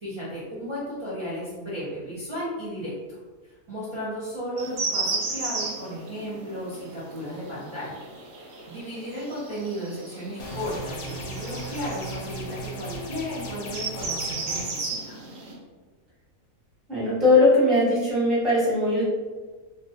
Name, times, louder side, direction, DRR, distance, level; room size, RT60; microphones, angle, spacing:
voice 1, 0.0-3.2 3.4-8.0 8.3-15.2, equal, 30° right, -10 dB, 0.6 m, -34 dB
sound 1, 4.6-15.5, right 3 dB, 90° right, 1.1 m, -35 dB
sound 2, 10.4-14.8, right 1 dB, 70° left, 0.9 m, -37 dB
voice 2, 16.9-19.1, left 2 dB, ahead, -9 dB, 0.8 m, -20 dB
2.5 x 2.1 x 2.7 m, 1.3 s
omnidirectional pair, 1.5 m